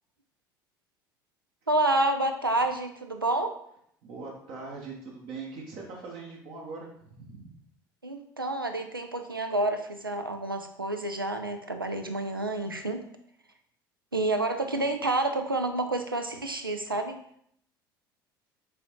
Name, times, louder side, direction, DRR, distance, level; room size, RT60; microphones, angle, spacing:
voice 1, 1.7-3.5 8.0-13.0 14.1-17.2, right 2 dB, 90° right, 6 dB, 0.4 m, -29 dB
voice 2, 4.0-7.6, right 4 dB, 50° right, -2 dB, 0.9 m, -41 dB
4.9 x 3.6 x 2.9 m, 0.69 s
figure-of-eight pair, 65°, 11 cm